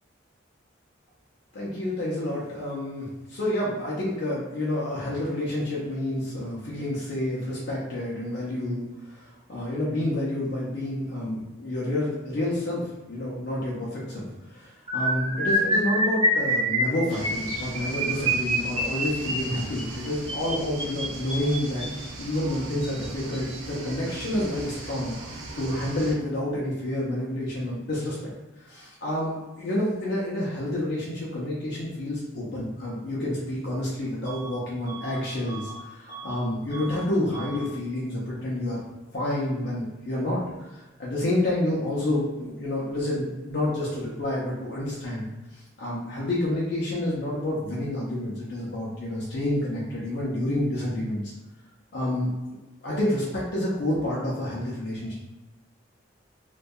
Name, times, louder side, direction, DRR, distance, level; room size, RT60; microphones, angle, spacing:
voice 1, 1.5-21.9 22.2-25.2 25.6-28.2 28.6-38.8 39.1-40.4 40.7-45.3 45.5-51.2 51.9-52.3 52.8-55.1, left 1 dB, 60° left, -6 dB, 0.5 m, -29 dB
sound 1, 14.9-22.1 22.8-23.1 23.3-23.6 23.8-24.0, right 1 dB, 30° right, 0.5 m, -27 dB
sound 2, 17.1-26.2, right 2 dB, 90° right, 0.5 m, -39 dB
Bus / Alarm, 34.2-34.6 34.8-36.4 36.7-37.0 37.3-37.7, right 3 dB, 20° left, 0.8 m, -41 dB
2.6 x 2.2 x 2.2 m, 1.1 s
head